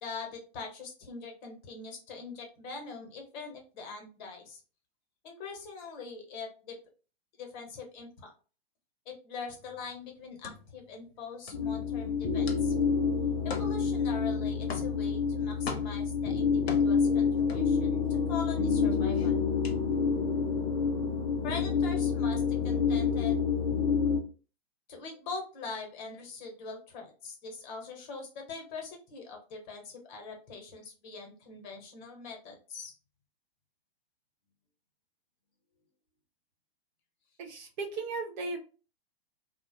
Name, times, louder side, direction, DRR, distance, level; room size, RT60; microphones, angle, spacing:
voice 1, 0.0-4.6 5.2-6.8 7.4-8.3 9.1-12.7 13.4-19.4 21.4-23.4 24.9-32.9, left 4 dB, 45° left, 2 dB, 1.0 m, -42 dB
sound 1, 9.6-18.3 18.6-20.5, left 4 dB, 85° left, 0.6 m, -43 dB
sound 2, 11.5-24.2, left 5 dB, 25° left, 0.3 m, -28 dB
voice 2, 37.4-38.6, right 3 dB, 45° right, 2 dB, 0.9 m, -36 dB
2.3 x 2.1 x 2.9 m, 0.36 s
hypercardioid pair, 110°, 31 cm